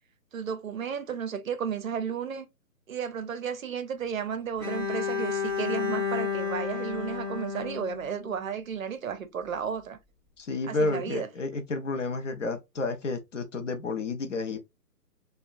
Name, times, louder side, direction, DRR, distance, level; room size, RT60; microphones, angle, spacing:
voice 1, 0.3-2.5 2.9-10.0 10.7-11.3, right 7 dB, 60° right, 0.5 m, -33 dB
Bowed string instrument, 4.6-8.7, left 6 dB, ahead, 0.7 m, -31 dB
voice 2, 10.4-14.6, left 3 dB, 50° left, 0.6 m, -31 dB
3.5 x 2.2 x 2.3 m
hypercardioid pair, 155°, 48 cm